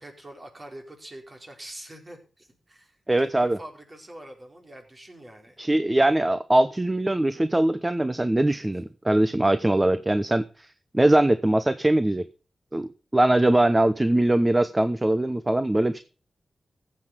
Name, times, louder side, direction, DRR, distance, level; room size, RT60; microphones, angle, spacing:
voice 1, 0.0-5.6, right 1 dB, 40° right, 3 dB, 4.4 m, -45 dB
voice 2, 3.1-3.6 5.6-10.7 10.9-12.2 12.7-16.0, right 1 dB, 25° right, 13 dB, 0.9 m, -22 dB
14.5 x 7.8 x 5.2 m, 0.37 s
cardioid pair, 40°, 0 cm